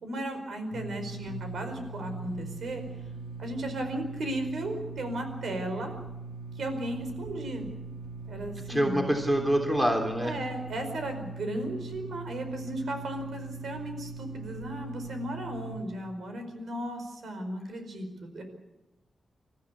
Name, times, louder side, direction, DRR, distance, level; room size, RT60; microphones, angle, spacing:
voice 1, 0.0-2.8 3.4-6.0 6.5-7.7 8.3-9.1 10.2-18.1 18.3-18.4, right 1 dB, 70° right, 6 dB, 4.9 m, -35 dB
sound 1, 0.7-15.8, right 3 dB, 50° right, 3.0 m, -41 dB
voice 2, 8.6-10.3, equal, 10° right, 2 dB, 3.2 m, -26 dB
28.0 x 14.0 x 8.4 m, 0.98 s
wide cardioid pair, 160°, 0 cm